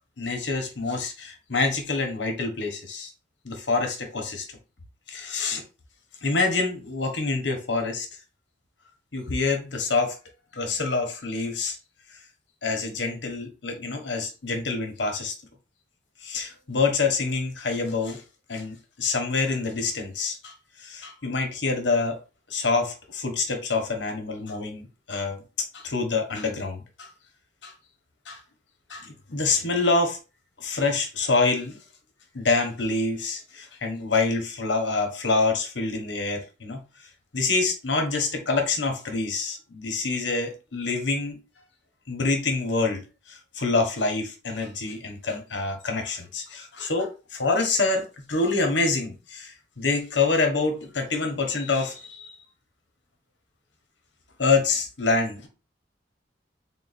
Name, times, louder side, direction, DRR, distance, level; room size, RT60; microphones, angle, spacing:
voice 1, 0.2-3.1 3.4-4.5 5.1-5.6 6.2-8.1 9.1-10.2 10.5-11.8 12.6-15.3 16.2-18.2 18.5-20.5 20.8-22.2 22.5-25.4 25.7-27.1 27.6-27.7 28.3-28.4 28.9-30.2 30.6-31.8 32.3-37.1 37.3-41.4 42.1-43.0 43.3-52.4 54.4-55.5, left 3 dB, 75° left, 1.0 m, -26 dB
3.8 x 2.2 x 4.1 m
head